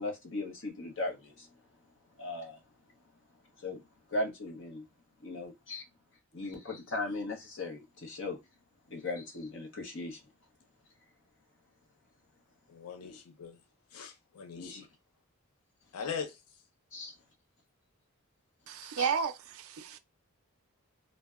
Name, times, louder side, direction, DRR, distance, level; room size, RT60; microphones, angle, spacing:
voice 1, 0.0-1.5 2.2-2.6 3.6-3.8 4.1-4.9 5.2-5.8 6.3-8.4 8.9-10.2 13.0-13.2 14.5-14.9 16.9-17.2 19.0-19.1, left 2 dB, 60° left, 0.7 m, -38 dB
voice 2, 12.7-13.6 13.9-14.9 15.9-16.4, left 6 dB, 85° left, 0.5 m, -40 dB
voice 3, 18.7-20.0, right 6 dB, 70° right, 0.3 m, -33 dB
2.6 x 2.1 x 2.3 m
head